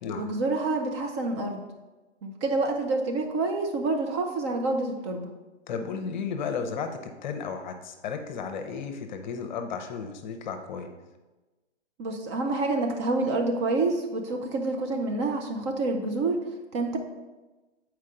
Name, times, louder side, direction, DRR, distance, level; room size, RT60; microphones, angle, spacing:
voice 1, 0.2-1.6 2.2-5.3 12.0-16.4 16.7-17.0, right 2 dB, 25° right, 3 dB, 0.5 m, -28 dB
voice 2, 5.7-10.9, left 6 dB, 40° left, 6 dB, 0.7 m, -34 dB
7.4 x 4.7 x 3.6 m, 1.2 s
figure-of-eight pair, 115°, 35 cm